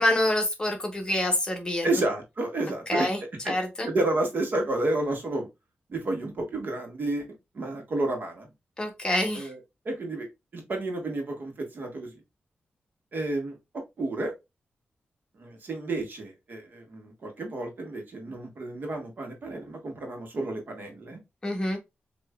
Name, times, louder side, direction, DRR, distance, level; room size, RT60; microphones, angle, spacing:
voice 1, 0.0-1.9 2.9-3.2 3.5-3.9 8.8-9.5 21.4-21.8, left 1 dB, 20° left, 1.2 m, -26 dB
voice 2, 1.8-3.1 3.4-3.5 3.8-5.5 5.9-7.2 7.5-8.5 9.3-9.6 9.8-10.3 10.5-12.1 13.1-13.6 14.0-14.3 15.4-21.2, right 2 dB, 55° right, 1.6 m, -30 dB
6.5 x 3.0 x 2.4 m
wide cardioid pair, 140°, 4 cm